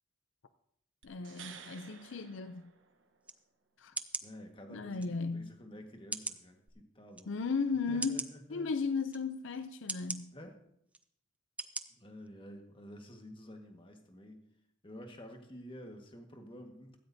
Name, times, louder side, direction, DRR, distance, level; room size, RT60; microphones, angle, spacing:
voice 1, 1.0-2.7 3.8-3.9 4.7-5.5 7.3-10.4, left 4 dB, 75° left, 0.5 m, -36 dB
sound 1, 1.0-3.3 6.7-6.8, right 7 dB, 70° right, 1.2 m, -52 dB
sound 2, 3.2-3.4 4.0-4.3 5.0-5.1 6.1-6.4 7.1-7.2 8.0-8.3 9.1-9.2 9.9-10.2 10.9-11.0 11.6-11.8 12.3-12.4, right 3 dB, 5° right, 0.5 m, -38 dB
voice 2, 4.2-7.3 7.9-8.7 10.3-10.6 12.0-14.4 14.8-17.0, equal, 25° left, 1.6 m, -50 dB
16.0 x 14.0 x 2.7 m
head